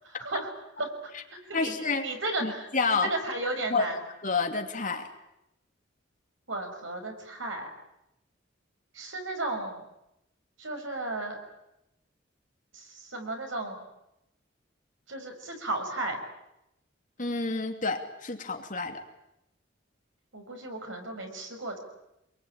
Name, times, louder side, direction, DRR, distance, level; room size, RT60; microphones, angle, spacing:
voice 1, 0.0-0.5 0.8-1.2 1.5-1.7 2.0-4.0 6.5-7.7 8.9-9.8 10.6-11.4 12.7-13.8 15.1-16.2 20.3-21.8, right 2 dB, 80° right, 4 dB, 5.9 m, -34 dB
voice 2, 1.5-2.1 2.4-3.1 3.7-3.8 4.2-5.1 17.2-19.0, left 4 dB, 45° left, 4 dB, 2.7 m, -29 dB
26.0 x 22.5 x 9.0 m, 0.86 s
head